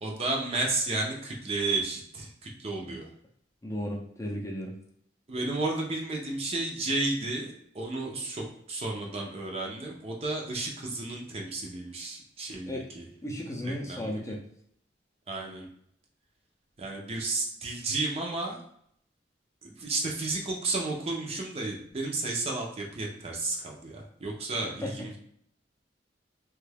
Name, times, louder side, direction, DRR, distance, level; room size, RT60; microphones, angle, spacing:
voice 1, 0.0-3.1 5.3-13.0 13.6-14.1 15.3-15.7 16.8-18.6 19.6-25.2, right 2 dB, 35° right, 0 dB, 0.6 m, -32 dB
voice 2, 3.6-4.7 12.7-12.9 13.2-14.4 24.6-24.9, left 1 dB, 15° left, -1 dB, 0.5 m, -35 dB
3.1 x 2.3 x 3.3 m, 0.70 s
head